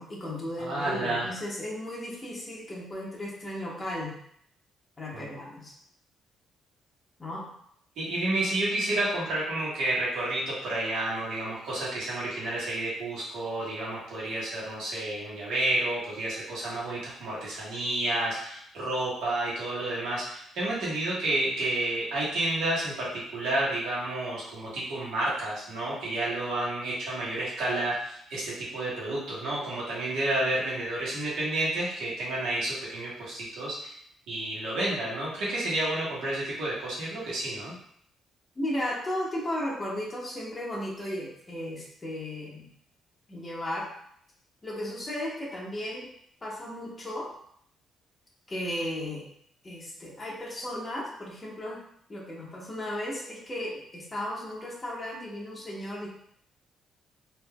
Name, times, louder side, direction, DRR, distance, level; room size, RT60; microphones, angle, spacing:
voice 1, 0.0-4.1 5.0-5.7 7.2-7.4 38.5-42.7 43.3-43.9 44.6-46.1 46.4-47.3 48.5-49.3 49.6-51.8 52.1-56.1, left 1 dB, 25° left, -5 dB, 1.2 m, -35 dB
voice 2, 0.6-1.3 5.1-5.3 8.0-34.0 34.3-37.7, right 1 dB, 80° right, -6 dB, 1.3 m, -30 dB
3.6 x 2.8 x 2.3 m, 0.67 s
cardioid pair, 90°, 0 cm